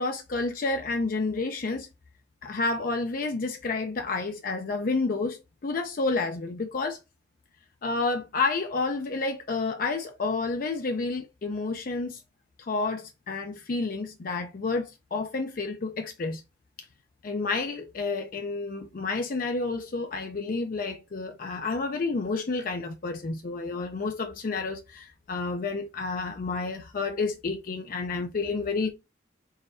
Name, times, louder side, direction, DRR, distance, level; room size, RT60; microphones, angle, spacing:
voice 1, 0.0-1.9 2.4-5.4 5.6-7.0 7.8-12.2 12.6-16.4 17.2-28.9, left 3 dB, 50° left, 0.5 m, -30 dB
4.0 x 3.8 x 2.5 m
head